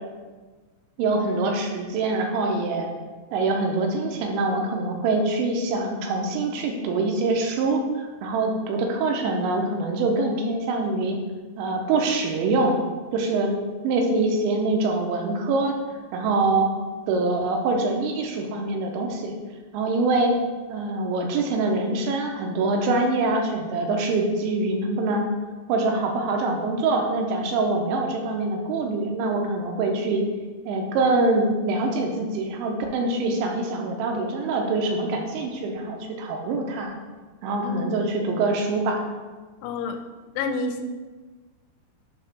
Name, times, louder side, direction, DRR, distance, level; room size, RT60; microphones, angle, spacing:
voice 1, 1.0-2.9 3.3-11.2 11.6-12.8 13.1-13.6 13.8-15.7 16.1-16.7 17.1-19.3 19.7-20.3 20.7-25.3 25.7-30.2 30.7-36.9 37.4-39.0, right 3 dB, 80° right, 2 dB, 3.0 m, -24 dB
voice 2, 39.6-40.0 40.4-40.9, left 3 dB, 85° left, 6 dB, 2.9 m, -29 dB
8.5 x 2.9 x 5.7 m, 1.3 s
omnidirectional pair, 5.3 m